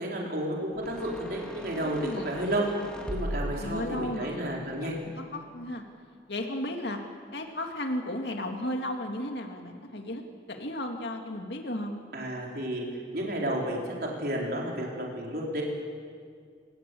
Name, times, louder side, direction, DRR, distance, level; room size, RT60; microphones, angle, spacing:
voice 1, 0.0-2.7 3.1-5.0 12.1-12.9 13.1-15.6, right 1 dB, 55° right, -2 dB, 4.7 m, -31 dB
sound 1, 0.8-6.0, equal, 5° left, 2.1 m, -40 dB
voice 2, 1.9-2.4 3.6-4.4 4.8-5.8 6.3-7.0 7.3-10.2 10.5-12.0, left 1 dB, 70° left, 3 dB, 2.3 m, -34 dB
28.0 x 19.0 x 8.6 m, 2.1 s
head